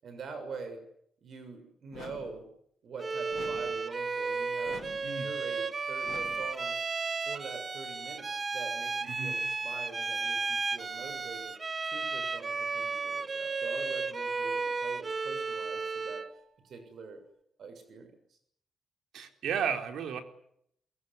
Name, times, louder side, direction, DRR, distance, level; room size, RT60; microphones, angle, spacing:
voice 1, 0.0-0.8 1.2-2.5 2.8-4.8 5.1-6.8 7.2-11.6 11.8-16.2 16.6-17.2 17.6-18.4, right 4 dB, 55° right, 8 dB, 6.9 m, -44 dB
sound 1, 1.9-2.5 3.3-3.9 4.6-5.2 6.0-6.6, left 7 dB, 70° left, 4.6 m, -47 dB
Bowed string instrument, 3.0-16.4, right 4 dB, 30° right, 1.0 m, -34 dB
voice 2, 19.1-20.2, right 7 dB, 85° right, 5 dB, 4.4 m, -33 dB
24.5 x 22.5 x 9.9 m, 0.71 s
wide cardioid pair, 150°, 0 cm